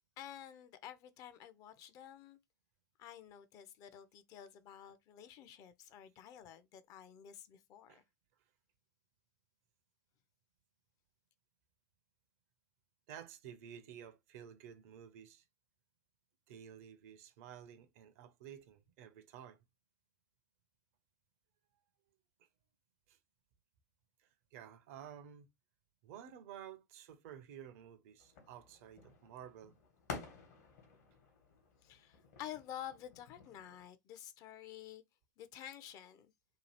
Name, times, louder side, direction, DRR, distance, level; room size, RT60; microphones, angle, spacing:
voice 1, 0.2-2.4 3.0-8.0 31.8-35.0 35.4-36.3, left 10 dB, 40° left, 0.5 m, -50 dB
voice 2, 13.1-15.4 16.5-19.6 22.4-22.5 23.1-23.2 24.2-25.5 26.0-29.7, right 9 dB, 55° right, 0.5 m, -53 dB
sound 1, 28.2-33.9, left 5 dB, 60° left, 1.1 m, -52 dB
2.8 x 2.3 x 3.1 m
figure-of-eight pair, 80°, 9 cm